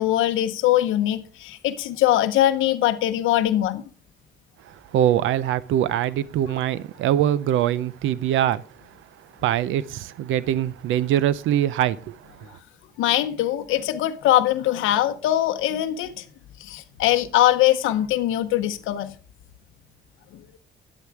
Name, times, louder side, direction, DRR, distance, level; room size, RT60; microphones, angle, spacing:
voice 1, 0.0-3.8 12.5-12.6 13.0-16.3 16.6-19.1 20.3-20.4, left 13 dB, 90° left, 0.7 m, -22 dB
voice 2, 4.9-8.6 9.4-12.1, right 11 dB, 85° right, 0.6 m, -23 dB
10.5 x 8.4 x 4.6 m
cardioid pair, 90°, 20 cm